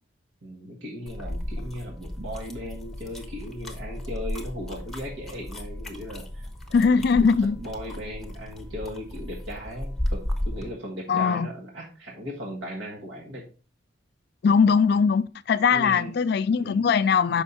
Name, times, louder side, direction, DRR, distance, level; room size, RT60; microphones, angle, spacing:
voice 1, 0.4-6.9 7.2-13.4 15.7-16.2 16.5-16.8, equal, 75° right, 1.4 m, -37 dB
sound 1, 1.1-10.7, left 1 dB, ahead, 0.9 m, -34 dB
voice 2, 6.7-7.6 11.1-11.5 14.4-17.4, left 5 dB, 55° left, 0.3 m, -21 dB
6.4 x 5.3 x 4.1 m
head